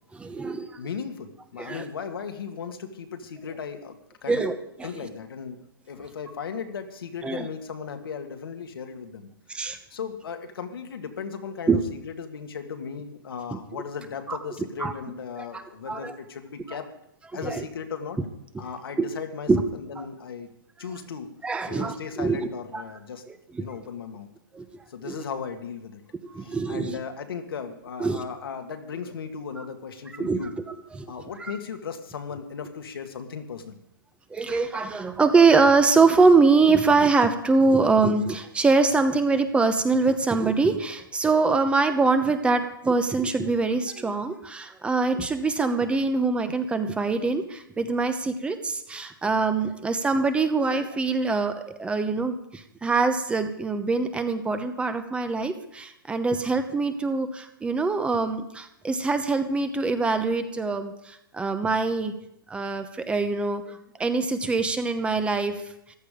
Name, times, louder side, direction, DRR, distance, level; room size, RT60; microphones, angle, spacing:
voice 1, 0.1-0.8 1.6-1.8 4.3-4.9 7.2-7.5 9.5-9.8 11.7-11.8 13.5-13.6 14.3-14.4 14.8-14.9 15.9-16.1 16.7-16.8 17.4-17.6 19.0-19.1 19.5-19.6 20.0-20.1 21.4-22.8 23.5-23.7 24.5-24.7 25.0-25.2 26.2-27.0 28.0-28.2 30.2-30.4 30.9-31.1 31.4-31.5 34.3-62.1 62.5-65.7, right 4 dB, 10° right, 9 dB, 0.9 m, -23 dB
voice 2, 0.8-4.0 4.2-4.4 4.8-5.6 5.9-9.3 9.9-11.8 12.1-16.9 17.3-18.2 18.6-20.5 20.8-21.3 21.7-23.2 23.6-24.3 24.9-26.0 26.4-30.5 31.1-33.8, left 6 dB, 80° left, 6 dB, 1.9 m, -36 dB
14.5 x 12.0 x 5.1 m, 0.78 s
hypercardioid pair, 140°, 12 cm